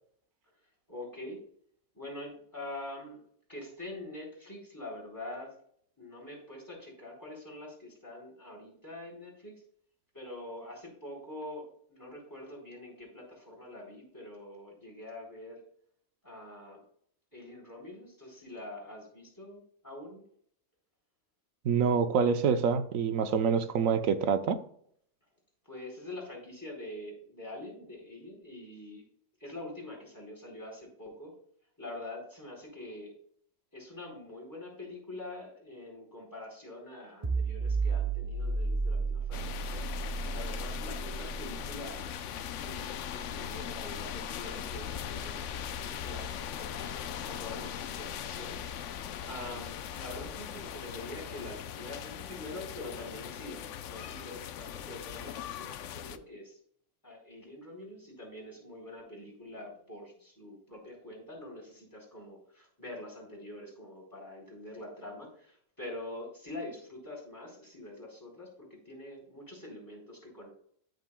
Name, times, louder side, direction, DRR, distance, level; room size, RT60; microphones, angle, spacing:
voice 1, 0.9-1.4 1.9-3.2 3.5-5.5 6.0-9.6 10.1-15.6 16.2-16.8 17.3-20.2 25.6-29.0 29.4-31.3 31.8-33.1 33.7-39.8 40.3-42.0 42.6-48.6 48.9-56.6 57.0-70.5, left 1 dB, 15° left, -2 dB, 4.0 m, -45 dB
voice 2, 21.6-24.6, right 6 dB, 85° right, 11 dB, 1.2 m, -26 dB
sound 1, 37.2-48.7, right 4 dB, 25° right, 0.6 m, -36 dB
sound 2, 39.3-56.2, left 10 dB, 70° left, 0.9 m, -40 dB
13.0 x 6.6 x 2.2 m, 0.63 s
omnidirectional pair, 1.3 m